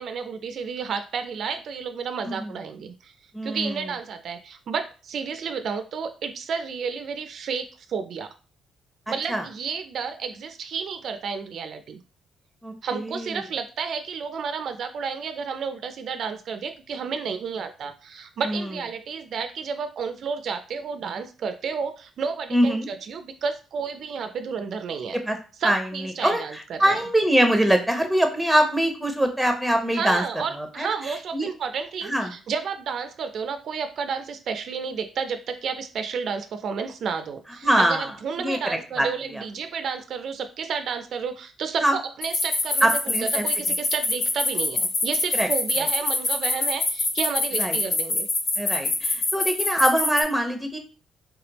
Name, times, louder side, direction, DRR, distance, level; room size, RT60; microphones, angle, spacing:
voice 1, 0.0-3.1 3.4-8.3 9.1-12.0 12.8-25.2 25.6-27.0 29.9-48.3, right 6 dB, 65° right, 8 dB, 0.4 m, -31 dB
voice 2, 3.3-3.8 9.3-9.4 12.6-13.4 18.4-18.7 22.5-22.9 25.3-25.4 25.6-25.8 26.2-30.2 30.5-30.9 31.3-31.5 32.0-32.3 37.6-38.1 38.4-39.1 39.3-39.4 41.8-42.0 42.8-43.4 45.3-45.5 47.6-47.8 48.6-50.8, right 1 dB, ahead, 4 dB, 0.8 m, -23 dB
sound 1, 42.2-50.2, left 3 dB, 65° left, 1.1 m, -24 dB
3.3 x 3.3 x 2.9 m, 0.36 s
cardioid pair, 90°, 0 cm